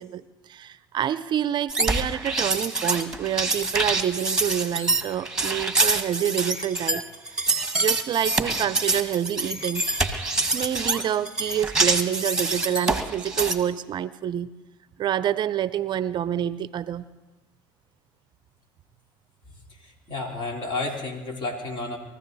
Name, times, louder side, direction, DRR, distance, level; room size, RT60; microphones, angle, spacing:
voice 1, 0.0-7.0 7.7-9.8 10.5-14.5 15.0-17.0, right 10 dB, 45° right, 16 dB, 0.6 m, -27 dB
sound 1, 1.7-13.6, right 2 dB, 5° right, 1.6 m, -25 dB
voice 2, 19.7-22.0, left 3 dB, 50° left, 1 dB, 3.7 m, -31 dB
22.5 x 15.0 x 4.1 m, 1.1 s
supercardioid pair, 85°, 11 cm